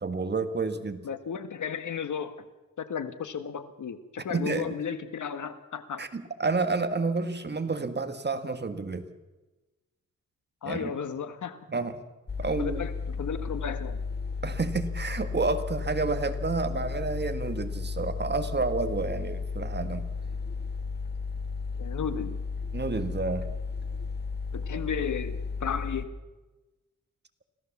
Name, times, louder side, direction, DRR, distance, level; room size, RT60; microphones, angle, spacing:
voice 1, 0.0-1.0 4.3-4.7 6.0-9.1 10.6-10.9 11.7-12.0 12.4-12.8 14.4-20.1 22.7-23.5, right 3 dB, 35° right, 8 dB, 1.7 m, -30 dB
voice 2, 1.0-2.4 2.8-6.0 10.6-11.6 12.6-14.0 21.8-22.4 24.5-26.2, left 7 dB, 80° left, 10 dB, 1.5 m, -34 dB
sound 1, 12.3-26.1, left 4 dB, 35° left, 1.4 m, -34 dB
26.0 x 16.5 x 7.3 m, 1.1 s
wide cardioid pair, 105°, 30 cm